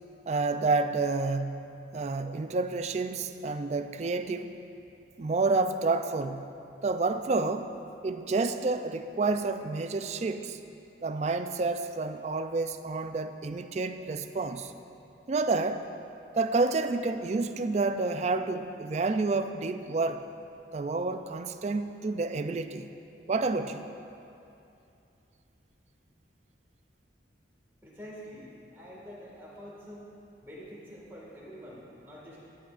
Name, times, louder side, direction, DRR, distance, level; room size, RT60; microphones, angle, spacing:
voice 1, 0.3-4.6 5.2-6.4 6.8-7.7 8.0-10.6 11.0-14.7 15.3-15.9 16.3-20.3 20.7-22.9 23.3-23.9, right 3 dB, 35° right, 9 dB, 0.3 m, -29 dB
voice 2, 27.8-30.1 30.4-32.5, equal, 10° right, -7 dB, 1.8 m, -46 dB
16.0 x 9.3 x 2.5 m, 2.7 s
head